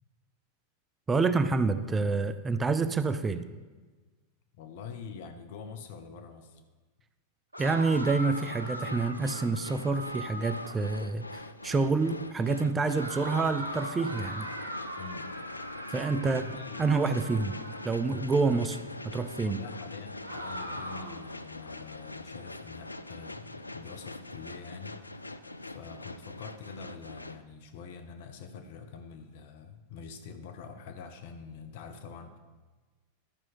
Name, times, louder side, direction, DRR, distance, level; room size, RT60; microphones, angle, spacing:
voice 1, 1.1-3.5 7.6-14.5 15.9-16.4 16.8-17.6 17.8-18.8 19.0-19.6, right 4 dB, 15° right, 12 dB, 0.4 m, -28 dB
voice 2, 4.6-6.6 15.0-15.3 16.2-17.0 18.5-18.7 19.4-25.0 25.6-32.4, left 6 dB, 50° left, 7 dB, 0.8 m, -45 dB
sound 1, 7.5-10.9 13.0-18.2 20.2-21.3, equal, 85° right, 1.0 m, -40 dB
sound 2, 7.6-27.4, left 2 dB, 85° left, 0.4 m, -43 dB
11.5 x 6.0 x 4.2 m, 1.3 s
figure-of-eight pair, 90°, 0 cm